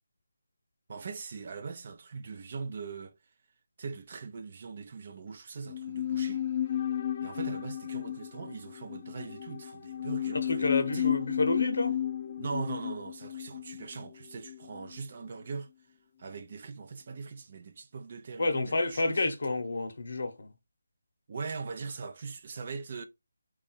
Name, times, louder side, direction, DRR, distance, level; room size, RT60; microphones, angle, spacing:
voice 1, 0.9-3.1 3.8-6.4 7.2-11.1 12.4-15.7 16.2-19.3 21.3-23.0, right 4 dB, 40° right, 0.5 m, -41 dB
sound 1, 5.7-15.0 15.3-15.4, left 10 dB, 35° left, 0.4 m, -33 dB
voice 2, 10.5-12.0 18.4-20.5, left 2 dB, 65° left, 0.8 m, -29 dB
3.4 x 2.4 x 4.1 m
figure-of-eight pair, 165°, 0 cm